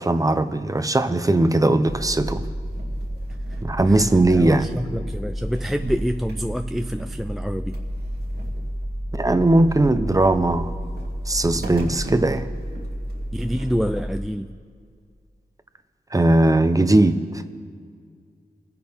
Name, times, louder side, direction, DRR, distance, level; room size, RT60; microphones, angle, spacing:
voice 1, 0.0-2.5 3.6-4.7 9.1-10.7 11.3-12.5 16.1-17.4, right 2 dB, 20° right, 10 dB, 0.8 m, -19 dB
sound 1, 1.9-14.3, right 1 dB, 70° right, 2.0 m, -31 dB
voice 2, 3.9-7.8 13.3-14.6, equal, ahead, 8 dB, 0.4 m, -27 dB
25.5 x 10.5 x 3.6 m, 2.1 s
wide cardioid pair, 80°, 17 cm